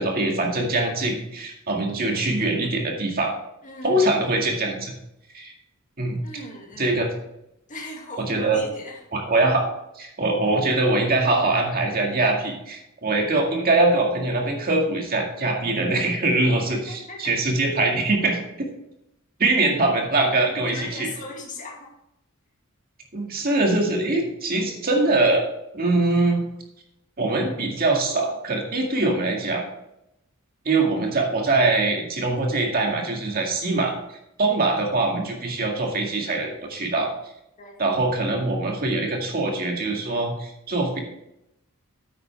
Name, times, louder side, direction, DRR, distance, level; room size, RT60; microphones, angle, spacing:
voice 1, 0.0-3.3 3.8-4.9 5.3-5.5 6.0-6.2 6.8-7.1 8.2-8.6 9.1-9.7 10.0-16.9 17.2-18.4 19.4-21.1 23.1-25.5 25.7-26.4 27.2-29.6 30.7-37.1 37.8-41.0, right 2 dB, 45° right, 1 dB, 2.0 m, -23 dB
voice 2, 3.6-4.1 6.2-7.0 7.7-9.0 16.7-17.3 20.6-21.9 37.6-37.7, left 2 dB, 35° left, 0 dB, 2.2 m, -38 dB
9.5 x 8.3 x 3.5 m, 0.84 s
head